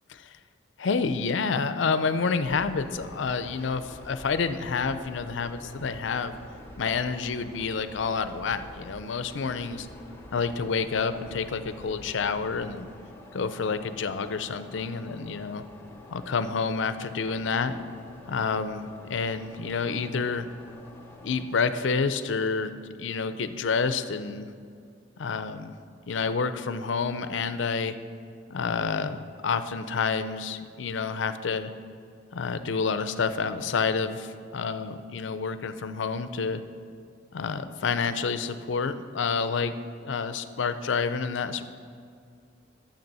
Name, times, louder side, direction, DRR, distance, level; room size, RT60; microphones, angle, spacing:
voice 1, 0.8-6.3 6.8-9.9 10.3-12.9 13.3-15.6 16.1-17.8 18.3-20.5 21.2-22.7 23.0-24.5 25.2-25.7 26.1-27.9 28.5-31.7 32.3-36.6 37.3-39.7 40.0-41.6, left 5 dB, 70° left, 11 dB, 0.5 m, -29 dB
sound 1, 2.4-21.5, left 1 dB, 10° left, 0.9 m, -47 dB
10.5 x 7.3 x 5.4 m, 2.3 s
head